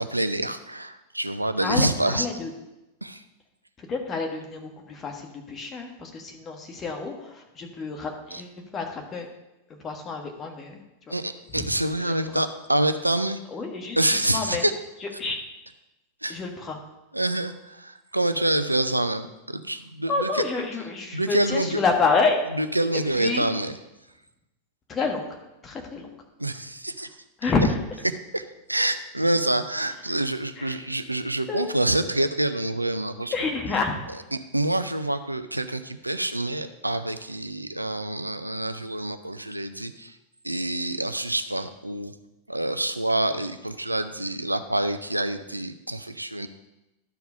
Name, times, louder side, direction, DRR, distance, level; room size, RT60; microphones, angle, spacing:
voice 1, 0.0-2.3 3.0-3.2 8.3-8.4 11.1-13.4 14.0-14.7 16.2-16.4 17.1-20.5 21.1-21.8 22.5-23.8 26.4-27.1 28.3-33.3 34.1-40.2 40.4-42.1 42.5-46.5, right 1 dB, 85° right, 10 dB, 0.5 m, -27 dB
voice 2, 1.6-2.5 3.9-9.3 9.8-10.8 11.1-11.2 11.6-11.7 12.1-12.4 13.5-14.7 15.2-15.4 16.3-16.8 20.1-22.4 23.2-23.4 24.9-25.3 25.6-26.1 27.4-27.8 30.6-30.8 31.5-31.7 33.3-33.9, left 4 dB, 25° left, 3 dB, 1.5 m, -28 dB
12.0 x 4.7 x 5.4 m, 0.96 s
figure-of-eight pair, 90°, 0 cm